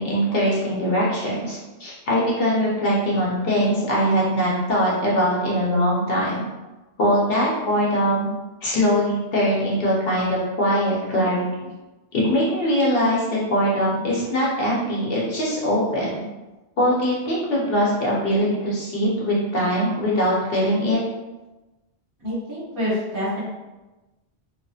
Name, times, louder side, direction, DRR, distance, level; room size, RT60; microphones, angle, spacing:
voice 1, 0.0-6.5 7.0-8.3 8.6-11.7 12.1-16.2 16.8-21.0, equal, 60° left, -5 dB, 0.8 m, -22 dB
voice 2, 22.2-23.4, equal, 50° right, -8 dB, 1.0 m, -27 dB
2.5 x 2.3 x 2.3 m, 1.1 s
omnidirectional pair, 1.2 m